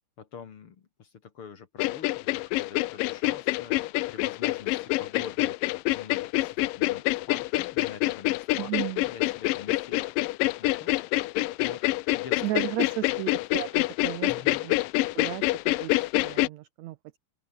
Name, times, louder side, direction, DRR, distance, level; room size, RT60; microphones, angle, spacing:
voice 1, 0.2-5.6 5.9-8.7 9.0-10.1 10.4-11.3 11.6-12.4 14.2-14.6, left 6 dB, 50° left, 2.1 m, -45 dB
sound 1, 1.8-16.5, left 19 dB, 80° left, 2.3 m, -26 dB
voice 2, 8.6-9.0 12.4-14.7 15.1-17.2, right 16 dB, 80° right, 1.6 m, -34 dB
open air
omnidirectional pair, 4.0 m